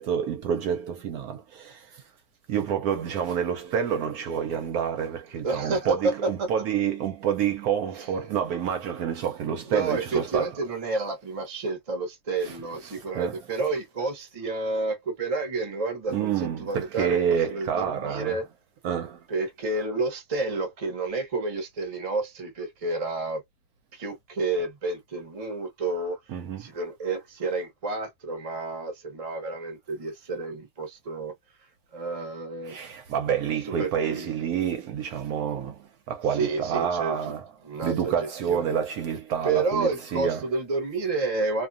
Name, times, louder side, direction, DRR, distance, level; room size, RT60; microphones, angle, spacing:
voice 1, 0.0-2.0 2.5-10.8 12.4-13.7 16.1-18.5 18.8-19.2 26.3-26.7 32.6-40.6, right 8 dB, 70° right, 1.0 m, -28 dB
voice 2, 5.4-6.5 7.9-8.3 9.7-16.3 16.6-17.2 17.5-18.5 19.3-23.4 23.9-31.3 31.6-32.8 33.6-34.3 36.3-37.3 37.6-38.7 39.4-41.7, right 3 dB, 30° right, 0.7 m, -30 dB
2.6 x 2.3 x 2.4 m
omnidirectional pair, 1.8 m